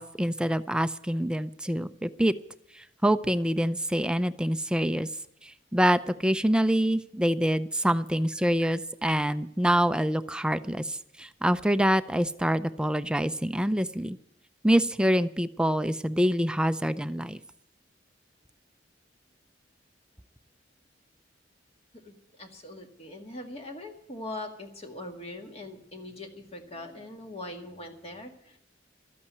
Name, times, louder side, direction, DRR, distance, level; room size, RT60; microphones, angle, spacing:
voice 1, 0.0-2.3 3.0-5.1 5.4-14.2 14.6-17.4, equal, 5° right, 12 dB, 0.5 m, -26 dB
voice 2, 22.0-28.6, left 1 dB, 35° left, 3 dB, 2.0 m, -41 dB
13.0 x 8.6 x 9.3 m, 0.75 s
head